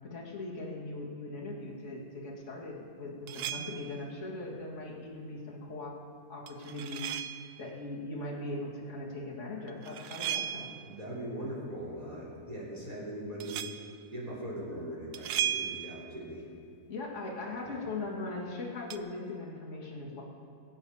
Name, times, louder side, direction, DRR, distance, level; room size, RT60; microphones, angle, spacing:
voice 1, 0.0-6.0 6.3-10.8 16.9-20.2, left 2 dB, 50° left, -3 dB, 2.3 m, -40 dB
sound 1, 3.3-4.0 6.5-7.6 9.7-10.9 13.4-13.9 15.1-16.2 18.9-19.0, right 10 dB, 80° right, 1.1 m, -36 dB
voice 2, 10.8-13.6 14.1-16.4 17.6-17.8, right 1 dB, 25° right, -6 dB, 3.5 m, -40 dB
22.5 x 7.9 x 5.6 m, 2.4 s
omnidirectional pair, 1.7 m